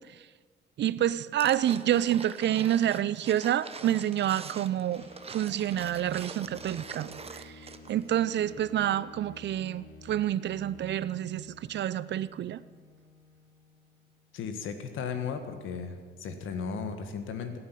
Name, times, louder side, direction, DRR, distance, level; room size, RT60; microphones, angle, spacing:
voice 1, 0.8-12.6, right 11 dB, 60° right, 0.6 m, -28 dB
sound 1, 1.4-8.0 8.3-8.4, right 5 dB, 30° right, 0.9 m, -44 dB
sound 2, 4.9-14.6, left 2 dB, 55° left, 3.3 m, -52 dB
voice 2, 14.3-17.5, left 6 dB, 80° left, 1.8 m, -35 dB
15.5 x 8.9 x 9.2 m
cardioid pair, 90°, 20 cm